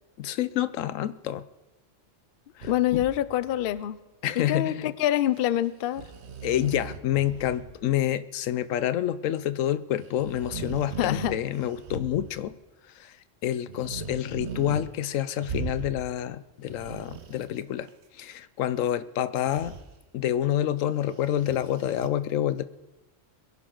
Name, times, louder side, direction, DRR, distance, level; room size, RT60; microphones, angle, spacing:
voice 1, 0.2-1.5 2.6-3.0 4.2-4.9 6.4-12.5 12.9-13.2 13.4-17.9 18.1-19.8 20.1-22.6, left 11 dB, 80° left, 16 dB, 1.0 m, -28 dB
voice 2, 2.6-4.0 4.4-6.1 11.0-11.3, left 12 dB, 60° left, 16 dB, 0.6 m, -26 dB
sound 1, 2.6-3.8 5.4-5.6 5.8-7.8 8.1-8.2 10.0-12.6 13.7-14.9 15.1-16.1 16.5-17.9 19.4-19.9 21.0-22.1, right 6 dB, 60° right, 1.2 m, -39 dB
22.0 x 11.0 x 3.8 m, 1.1 s
omnidirectional pair, 1.3 m